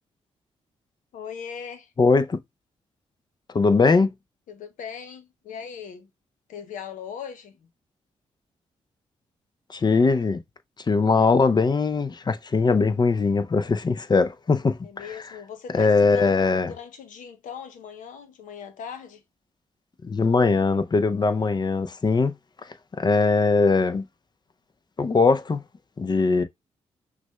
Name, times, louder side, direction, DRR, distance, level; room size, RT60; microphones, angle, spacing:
voice 1, 1.1-1.9 4.5-6.1 6.5-7.7 14.8-19.2, left 7 dB, 80° left, 0.7 m, -39 dB
voice 2, 2.0-2.4 3.5-4.1 9.7-10.4 10.9-14.8 15.7-16.7 20.0-22.3 23.0-24.0 25.0-25.6 26.0-26.4, left 4 dB, 35° left, 0.5 m, -20 dB
5.9 x 2.2 x 2.2 m
supercardioid pair, 50°, 13 cm